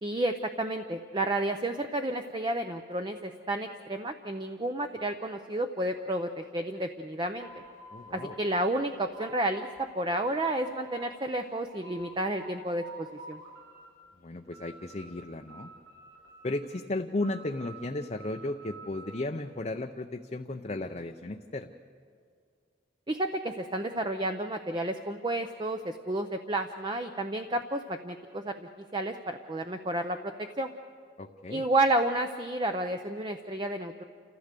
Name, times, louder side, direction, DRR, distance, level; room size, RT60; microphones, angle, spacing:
voice 1, 0.0-7.5 8.1-13.4 23.1-30.7 31.5-34.0, right 1 dB, 25° right, 6 dB, 0.6 m, -31 dB
sound 1, 7.4-9.8 10.1-11.2 11.6-12.5 12.8-13.9 14.2-15.2 15.5-16.7 17.2-19.3, right 2 dB, 75° right, 6.0 m, -49 dB
voice 2, 7.9-8.3 14.2-15.7 16.4-21.7 31.2-31.7, left 2 dB, 35° left, 4 dB, 0.6 m, -35 dB
29.0 x 15.0 x 6.7 m, 2.1 s
head